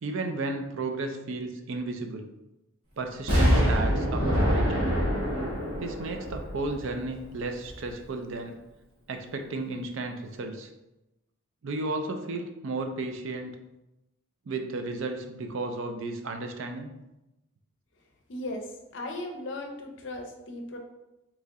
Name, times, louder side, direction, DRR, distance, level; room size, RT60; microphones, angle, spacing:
voice 1, 0.0-2.3 3.0-4.9 5.8-8.6 9.1-10.7 11.6-13.6 14.5-16.9, right 2 dB, 65° right, 5 dB, 0.4 m, -33 dB
Explosion, 3.3-7.2 7.7-7.8, equal, 80° right, 1.2 m, -25 dB
voice 2, 18.3-20.8, left 1 dB, 55° left, 4 dB, 0.5 m, -37 dB
3.0 x 2.7 x 3.5 m, 0.95 s
head